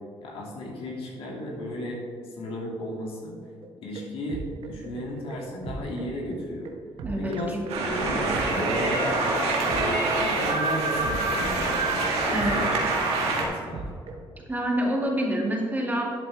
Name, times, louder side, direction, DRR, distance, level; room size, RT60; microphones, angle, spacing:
voice 1, 0.2-2.0 2.4-3.3 3.8-6.7 7.2-7.5 7.9-9.2 9.7-12.8 13.2-13.9, left 1 dB, 70° left, -2 dB, 2.6 m, -34 dB
sound 1, 3.6-14.2, right 3 dB, 70° right, 1.1 m, -39 dB
voice 2, 7.0-8.2 12.3-12.9 14.5-16.1, right 1 dB, 15° right, -1 dB, 2.2 m, -28 dB
sound 2, 7.7-13.5, right 2 dB, 90° right, 1.8 m, -25 dB
11.5 x 7.6 x 3.6 m, 2.2 s
cardioid pair, 90°, 10 cm